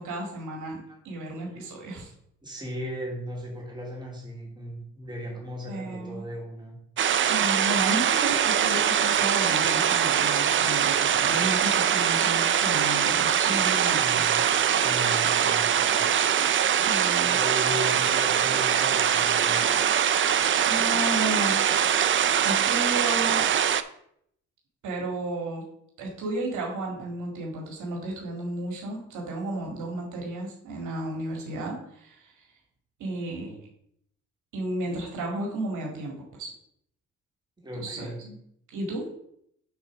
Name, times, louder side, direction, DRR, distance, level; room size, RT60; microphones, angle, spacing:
voice 1, 0.0-0.8 1.0-2.1 5.7-6.2 7.2-14.2 16.7-17.4 20.6-21.6 22.4-23.5 24.8-25.6 26.0-32.5 33.0-33.6 34.5-36.5 37.7-38.3 38.7-39.0, right 2 dB, 80° right, 0 dB, 2.0 m, -33 dB
voice 2, 2.4-6.8 13.9-14.4 14.7-16.0 17.2-19.9 37.6-38.2, equal, 15° right, -2 dB, 2.8 m, -37 dB
sound 1, 7.0-23.8, right 9 dB, 40° right, 0.5 m, -23 dB
7.1 x 4.0 x 6.2 m, 0.71 s
cardioid pair, 90°, 30 cm